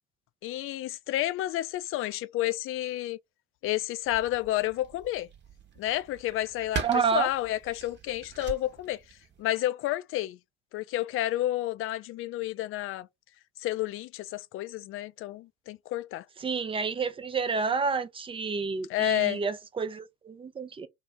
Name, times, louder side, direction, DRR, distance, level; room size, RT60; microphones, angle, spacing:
voice 1, 0.4-3.2 3.6-5.3 5.8-6.8 7.1-9.0 9.4-10.4 10.7-13.1 13.6-16.2 18.9-19.4, left 14 dB, 45° left, 0.4 m, -30 dB
sound 1, 4.0-9.4, right 7 dB, 35° right, 0.9 m, -41 dB
voice 2, 6.8-7.3 16.4-20.9, right 5 dB, 15° right, 0.4 m, -29 dB
2.6 x 2.0 x 3.5 m
hypercardioid pair, 65°, 32 cm